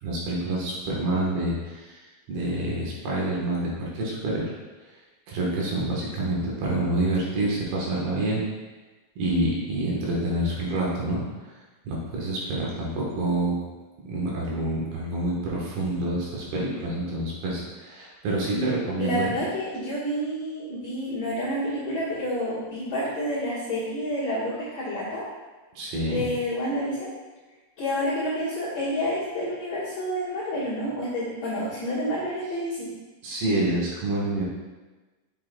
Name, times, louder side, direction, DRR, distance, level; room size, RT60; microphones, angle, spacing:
voice 1, 0.0-4.5 5.3-8.4 9.2-11.2 11.8-13.5 14.0-19.3 25.8-26.3 33.2-34.4, right 1 dB, 70° right, -4 dB, 3.1 m, -27 dB
voice 2, 18.5-25.2 26.1-27.1 27.8-32.9, equal, 55° left, -11 dB, 2.1 m, -29 dB
7.8 x 6.7 x 2.3 m, 1.2 s
omnidirectional pair, 4.8 m